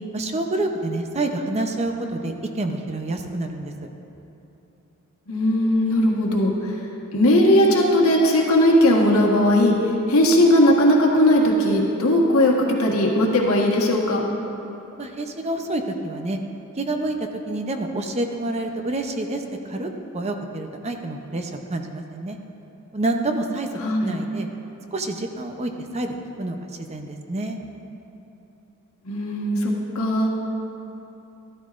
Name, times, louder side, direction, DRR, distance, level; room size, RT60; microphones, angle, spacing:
voice 1, 0.1-3.9 14.3-14.6 15.0-16.4 16.8-17.2 17.5-19.9 20.1-22.4 22.9-23.7 24.0-24.5 24.9-27.6, right 2 dB, 30° right, 4 dB, 0.6 m, -28 dB
voice 2, 5.3-6.7 7.1-12.5 12.8-14.3 23.8-24.2 29.0-30.3, left 1 dB, 80° left, -1 dB, 1.4 m, -18 dB
12.5 x 12.5 x 2.5 m, 3.0 s
head